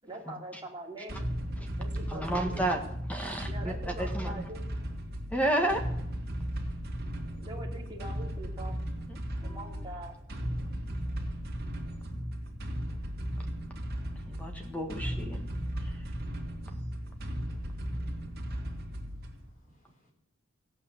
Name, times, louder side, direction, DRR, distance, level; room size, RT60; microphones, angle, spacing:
voice 1, 0.0-1.2 1.7-2.6 3.5-4.7 7.3-8.8 9.4-10.2, right 1 dB, 20° right, -2 dB, 2.9 m, -43 dB
sound 1, 1.1-19.5, equal, 50° right, 2.4 m, -36 dB
voice 2, 2.1-2.8 3.1-4.4 5.3-5.8 9.4-9.8 14.3-15.4, right 1 dB, 5° left, 4 dB, 1.7 m, -31 dB
voice 3, 18.4-19.0 19.3-20.1, equal, 40° left, 1 dB, 4.2 m, -68 dB
15.5 x 8.9 x 7.1 m, 0.77 s
head